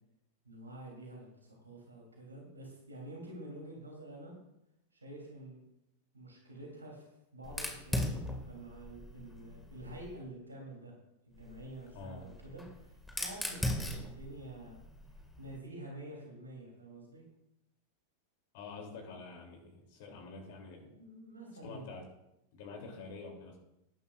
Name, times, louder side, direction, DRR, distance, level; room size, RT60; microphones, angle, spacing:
voice 1, 0.4-4.3 4.9-5.6 6.1-10.9 11.3-14.8 15.4-17.2 20.9-21.9, right 1 dB, 80° right, -1 dB, 3.3 m, -48 dB
Fire, 7.4-10.2 11.4-15.6, left 1 dB, 5° left, 2.1 m, -39 dB
voice 2, 11.9-12.3 18.5-20.9 21.6-22.1 22.5-23.6, left 4 dB, 50° left, 2 dB, 3.1 m, -47 dB
18.5 x 11.0 x 2.5 m, 0.85 s
figure-of-eight pair, 90°, 0 cm